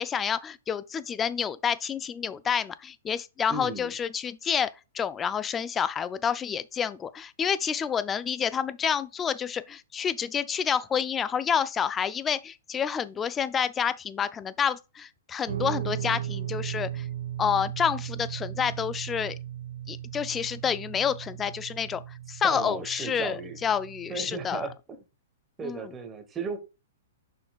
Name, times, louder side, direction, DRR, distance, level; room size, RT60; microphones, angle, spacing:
voice 1, 0.0-17.0 17.4-19.4 19.9-22.0 22.3-24.7 25.6-25.9, left 7 dB, 15° left, 0.4 m, -29 dB
voice 2, 3.5-3.9 22.4-23.6 24.1-25.0 25.6-26.6, right 4 dB, 15° right, 1.2 m, -35 dB
Guitar, 15.5-24.7, right 11 dB, 85° right, 1.4 m, -37 dB
6.8 x 5.8 x 2.4 m
hypercardioid pair, 145°, 0 cm